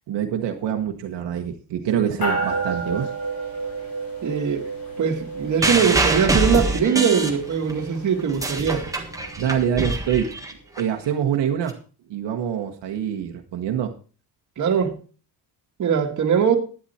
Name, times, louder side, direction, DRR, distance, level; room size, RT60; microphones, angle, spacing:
voice 1, 0.1-3.1 9.4-10.3 10.8-11.8 12.1-13.9, right 9 dB, 70° right, 1.4 m, -25 dB
sound 1, 2.2-9.9, right 3 dB, 55° left, 7.0 m, -32 dB
voice 2, 4.2-4.7 5.0-8.9 14.6-15.0 15.8-16.6, right 7 dB, 40° right, 1.9 m, -21 dB
sound 2, 5.6-7.8 8.2-10.8 11.7-11.8, right 2 dB, 5° right, 1.5 m, -24 dB
11.5 x 10.0 x 4.3 m
cardioid pair, 160°, 44 cm